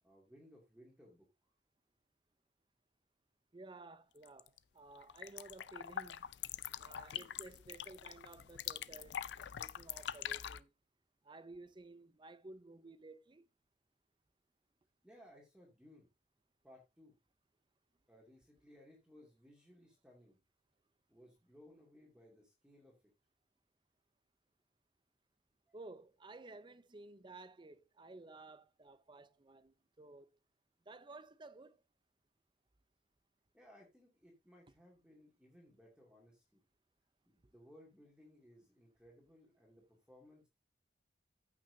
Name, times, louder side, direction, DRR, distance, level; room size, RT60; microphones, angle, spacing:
voice 1, 0.0-1.3 15.0-16.1 16.6-17.1 18.1-20.4 21.1-23.0 33.5-36.6 37.2-40.5, equal, 5° right, 2.4 m, -62 dB
voice 2, 3.5-6.3 6.8-10.7 11.2-13.5 25.7-30.4 30.9-31.8, right 2 dB, 25° right, 0.6 m, -54 dB
sound 1, 4.2-4.6 4.9-10.6, left 10 dB, 75° left, 0.4 m, -44 dB
14.5 x 6.0 x 2.7 m
head